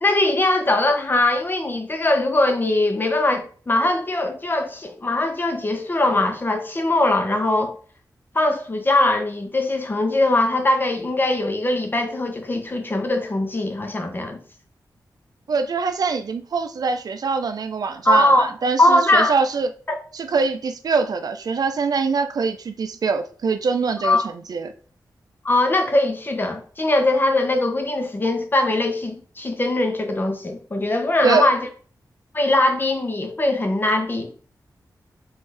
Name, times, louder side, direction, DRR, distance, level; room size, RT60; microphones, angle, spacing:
voice 1, 0.0-7.7 8.3-14.4 18.0-18.5 18.8-19.3 19.9-20.0 24.0-24.2 25.4-31.7 32.3-34.4, left 2 dB, 30° left, 0.8 m, -21 dB
voice 2, 15.5-19.7 20.1-24.7 31.2-31.5, right 4 dB, 65° right, 0.4 m, -23 dB
5.5 x 2.6 x 3.3 m
wide cardioid pair, 120°, 7 cm